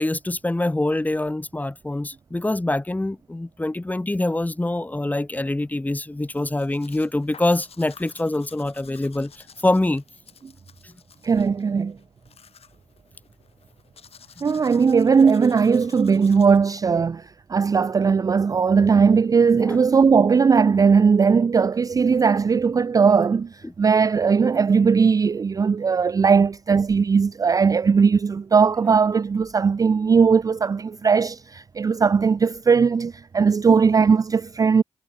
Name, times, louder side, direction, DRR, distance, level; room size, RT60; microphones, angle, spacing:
voice 1, 0.0-10.0 10.8-10.9 14.4-14.5 19.6-19.8 23.6-23.7, left 2 dB, 15° left, 2.1 m, -25 dB
Domestic sounds home sounds, 6.3-16.6, left 7 dB, 60° left, 6.3 m, -51 dB
voice 2, 11.2-12.0 14.4-34.8, right 5 dB, 30° right, 0.4 m, -18 dB
cardioid pair, 85°, 11 cm